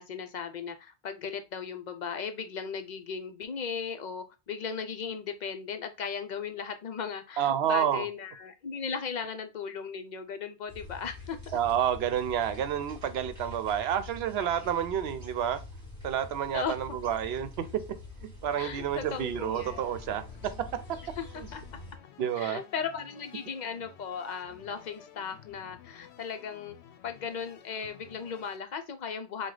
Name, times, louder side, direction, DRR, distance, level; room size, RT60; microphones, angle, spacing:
voice 1, 0.0-11.6 16.5-16.8 18.6-19.8 21.2-21.3 21.5-21.6 22.3-26.8 27.0-29.5, left 6 dB, 50° left, 0.6 m, -37 dB
voice 2, 7.4-8.1 11.5-15.6 16.0-21.0 21.4-21.5 22.2-22.6, right 9 dB, 75° right, 0.8 m, -30 dB
sound 1, 10.7-22.0, left 2 dB, 15° right, 1.5 m, -46 dB
sound 2, 18.5-28.6, left 9 dB, 80° left, 0.8 m, -54 dB
4.8 x 2.3 x 3.7 m
omnidirectional pair, 1.1 m